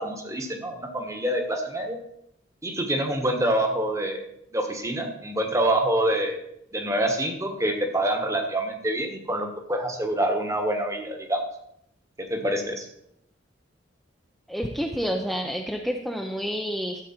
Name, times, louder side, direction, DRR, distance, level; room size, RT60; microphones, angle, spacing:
voice 1, 0.0-2.0 2.6-4.3 4.5-6.4 6.7-11.4 12.2-12.9, right 1 dB, 15° right, 5 dB, 1.4 m, -26 dB
voice 2, 14.5-17.0, equal, ahead, 1 dB, 0.7 m, -29 dB
13.5 x 8.0 x 4.4 m, 0.78 s
head